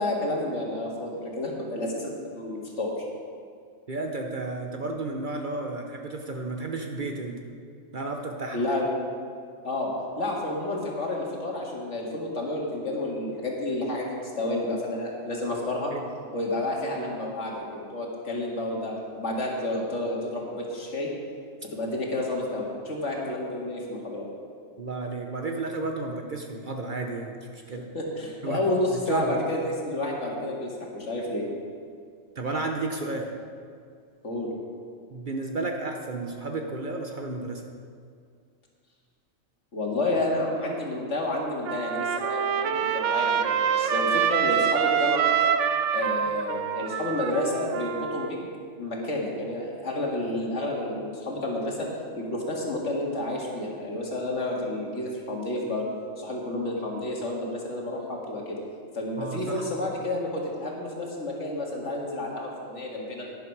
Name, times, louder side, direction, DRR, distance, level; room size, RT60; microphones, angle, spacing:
voice 1, 0.0-2.9 8.5-8.9 9.6-9.9 10.2-15.9 16.3-21.1 21.7-24.3 27.9-31.5 34.2-34.5 39.7-45.3 45.9-48.4 48.8-51.9 52.2-55.9 56.2-58.6 58.9-63.2, left 1 dB, 65° left, -2 dB, 2.2 m, -30 dB
voice 2, 3.9-7.4 7.9-8.6 15.9-16.0 24.8-27.9 28.4-28.6 28.9-29.4 32.4-33.3 35.1-37.7 59.2-59.7, right 3 dB, 45° right, 2 dB, 0.9 m, -32 dB
Trumpet, 41.7-48.3, right 8 dB, 75° right, 0.9 m, -26 dB
11.5 x 10.5 x 4.7 m, 2.2 s
omnidirectional pair, 1.3 m